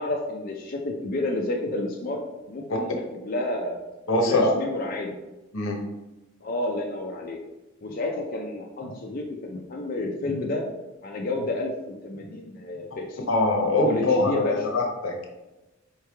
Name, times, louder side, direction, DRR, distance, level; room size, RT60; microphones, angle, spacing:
voice 1, 0.0-3.8 4.2-5.1 6.4-7.4 7.8-10.6 11.0-13.2 13.8-14.6, left 2 dB, 45° left, 0 dB, 0.5 m, -30 dB
voice 2, 4.1-4.5 5.5-5.8 13.3-15.3, left 2 dB, 85° left, 2 dB, 0.8 m, -23 dB
4.4 x 3.2 x 3.4 m, 1.0 s
head